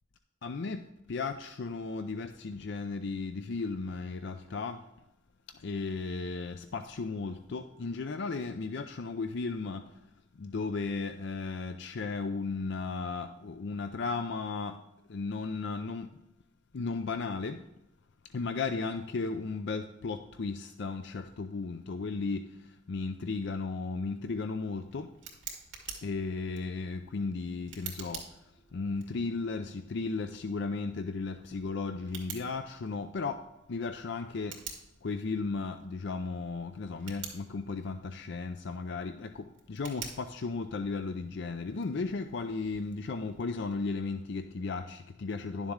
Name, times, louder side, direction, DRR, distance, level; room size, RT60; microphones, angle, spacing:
voice 1, 0.4-4.8 5.5-9.9 10.4-14.8 15.1-16.2 16.7-17.6 18.3-25.1 26.0-28.3 28.7-33.4 33.7-34.6 35.0-45.7, left 4 dB, 65° left, 8 dB, 0.5 m, -35 dB
Tick, 24.2-43.9, right 7 dB, 70° right, 2.3 m, -50 dB
11.0 x 7.2 x 3.7 m, 0.91 s
head